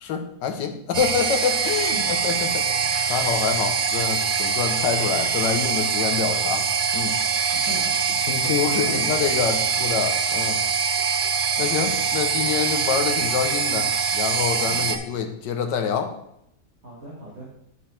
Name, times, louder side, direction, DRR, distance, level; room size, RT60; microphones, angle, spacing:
voice 1, 0.0-7.1 8.2-10.6 11.6-16.1, left 7 dB, 90° left, 6 dB, 1.5 m, -26 dB
sound 1, 0.9-15.0, right 6 dB, 70° right, 0.5 m, -23 dB
voice 2, 7.5-8.0 8.4-9.1 14.7-14.9 16.8-17.5, right 1 dB, 40° right, -6 dB, 2.0 m, -38 dB
10.5 x 4.5 x 4.4 m, 0.75 s
omnidirectional pair, 1.8 m